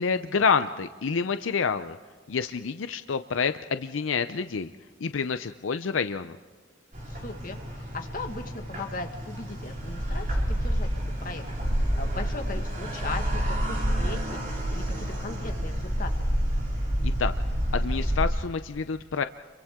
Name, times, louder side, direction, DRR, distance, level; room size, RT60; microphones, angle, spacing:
voice 1, 0.0-2.0 2.3-4.7 5.0-6.4 17.0-17.3 17.7-19.2, left 5 dB, 80° left, 10 dB, 0.6 m, -28 dB
sound 1, 6.9-18.2, equal, 45° right, 4.9 m, -29 dB
voice 2, 7.1-10.9 11.2-11.4 12.0-14.4 14.7-16.1, left 3 dB, 45° left, 4 dB, 1.8 m, -38 dB
30.0 x 24.0 x 3.7 m, 1.5 s
head